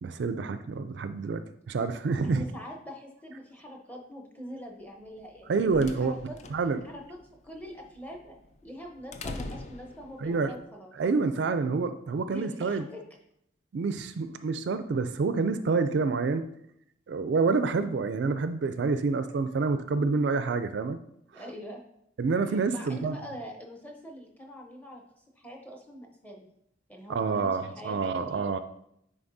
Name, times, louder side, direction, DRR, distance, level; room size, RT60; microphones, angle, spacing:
voice 1, 0.0-2.4 5.5-6.1 6.5-6.8 10.2-10.5 11.0-12.9 13.7-16.5 17.1-21.0 22.2-23.2 27.1-28.6, right 4 dB, 65° right, 10 dB, 0.3 m, -28 dB
voice 2, 2.2-5.6 6.0-6.4 6.8-7.2 7.4-8.4 8.6-10.9 12.2-13.0 21.3-21.8 22.5-26.5 26.9-28.5, equal, 10° left, 1 dB, 0.9 m, -43 dB
sound 1, 5.2-10.5, left 2 dB, 40° left, 0.4 m, -43 dB
9.3 x 3.8 x 2.7 m, 0.74 s
head